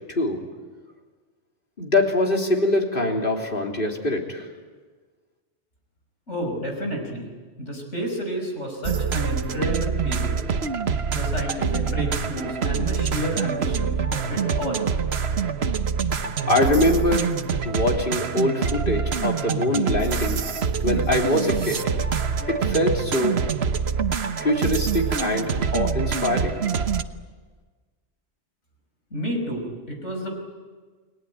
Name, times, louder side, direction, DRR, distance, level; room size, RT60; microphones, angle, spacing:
voice 1, 1.8-4.5 16.5-17.3 17.6-20.4 20.8-21.8 22.5-23.4 24.4-26.6, left 1 dB, 50° left, 1 dB, 3.6 m, -23 dB
voice 2, 6.3-7.3 7.6-10.4 11.1-14.8 29.1-30.3, equal, 90° left, 2 dB, 6.1 m, -30 dB
sound 1, 8.8-27.0, right 6 dB, 65° right, 1.3 m, -25 dB
30.0 x 20.5 x 9.3 m, 1.4 s
omnidirectional pair, 1.2 m